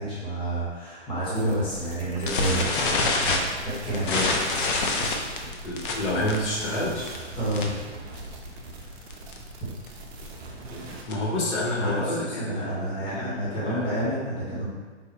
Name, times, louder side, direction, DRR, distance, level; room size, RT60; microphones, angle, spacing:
voice 1, 0.0-2.9 3.2-4.2 7.4-7.7 9.6-9.7 11.8-14.7, right 1 dB, 15° left, -9 dB, 0.9 m, -29 dB
sound 1, 1.3-11.0, right 2 dB, 60° right, 0.7 m, -42 dB
sound 2, 2.3-7.9 8.2-8.4 8.7-8.8 9.1-9.4 9.9-11.4, left 3 dB, 45° left, 0.5 m, -27 dB
voice 2, 5.6-7.2 10.7-13.9, left 1 dB, 70° left, -5 dB, 1.1 m, -29 dB
4.5 x 2.0 x 2.9 m, 1.4 s
hypercardioid pair, 135°, 36 cm